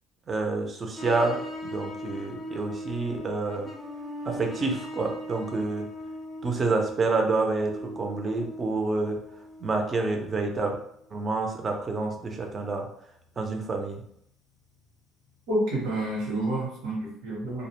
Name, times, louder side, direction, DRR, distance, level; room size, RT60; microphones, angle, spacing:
voice 1, 0.3-3.7 4.3-5.9 6.4-9.2 9.6-10.8 11.1-12.9 13.4-14.0, right 3 dB, 30° right, 2 dB, 0.5 m, -28 dB
sound 1, 1.0-11.2 11.6-11.7 14.9-15.0 15.3-15.4 15.7-15.8, equal, 25° left, 0.5 m, -39 dB
voice 2, 15.5-17.7, right 1 dB, 90° right, -6 dB, 0.9 m, -29 dB
2.4 x 2.0 x 2.9 m, 0.71 s
cardioid pair, 115°, 0 cm